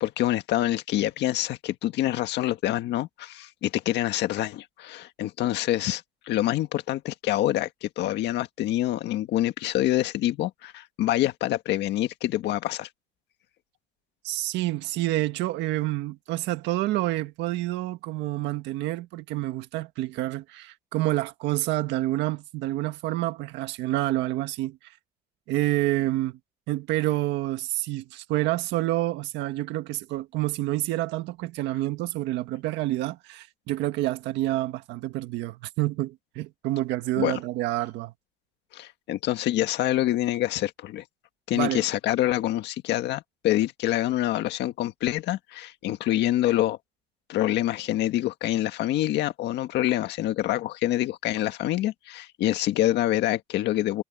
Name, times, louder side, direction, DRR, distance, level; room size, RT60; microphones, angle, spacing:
voice 1, 0.0-12.9 37.2-37.4 38.7-41.0 41.5-46.8 47.3-54.0, left 14 dB, 75° left, 1.7 m, -26 dB
voice 2, 14.2-25.0 25.5-26.4 26.7-38.1 41.5-41.8, right 16 dB, 85° right, 1.6 m, -28 dB
cardioid pair, 110°, 18 cm